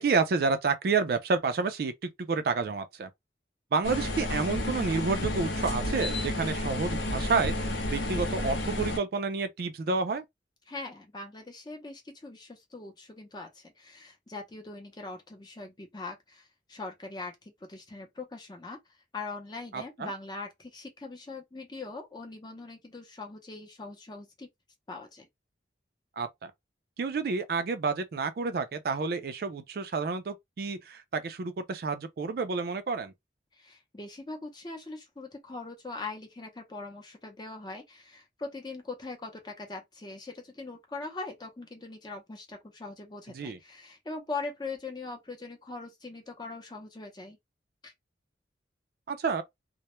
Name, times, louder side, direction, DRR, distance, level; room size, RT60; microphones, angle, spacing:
voice 1, 0.0-3.1 3.7-10.2 19.7-20.1 26.2-26.5 27.0-33.1 43.3-43.6 49.1-49.4, right 4 dB, 55° right, 0.4 m, -29 dB
sound 1, 3.8-9.0, left 1 dB, 75° left, 0.6 m, -31 dB
voice 2, 10.7-18.8 19.1-24.5 24.9-25.3 33.5-47.4 47.8-47.9, left 3 dB, 25° left, 0.6 m, -41 dB
2.1 x 2.0 x 2.9 m
head